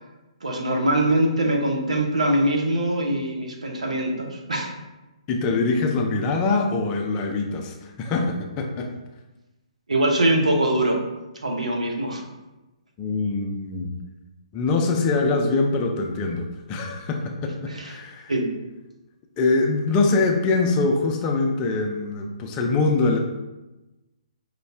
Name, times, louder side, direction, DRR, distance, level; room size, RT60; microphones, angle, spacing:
voice 1, 0.4-4.7 9.9-11.0 11.4-12.2 17.7-17.9 18.3-18.5, right 1 dB, 80° right, 1 dB, 0.9 m, -23 dB
voice 2, 5.3-8.9 13.0-13.9 14.5-18.3 19.4-23.2, left 3 dB, 25° left, 2 dB, 0.5 m, -23 dB
5.2 x 2.3 x 3.4 m, 1.1 s
figure-of-eight pair, 135°, 4 cm